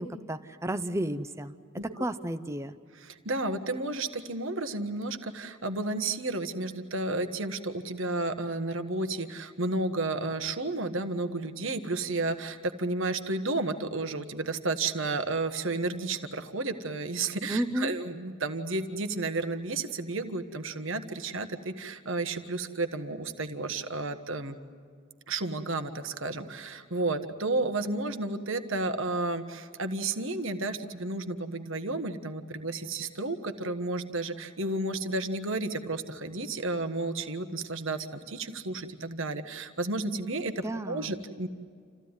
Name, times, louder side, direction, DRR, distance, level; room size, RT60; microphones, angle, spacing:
voice 1, 0.0-1.5 1.8-2.7 17.5-17.9 40.6-41.1, right 1 dB, 15° right, 10 dB, 0.7 m, -32 dB
voice 2, 2.9-24.6 25.3-41.5, right 2 dB, 60° right, 8 dB, 1.5 m, -32 dB
28.0 x 15.5 x 9.8 m, 2.2 s
head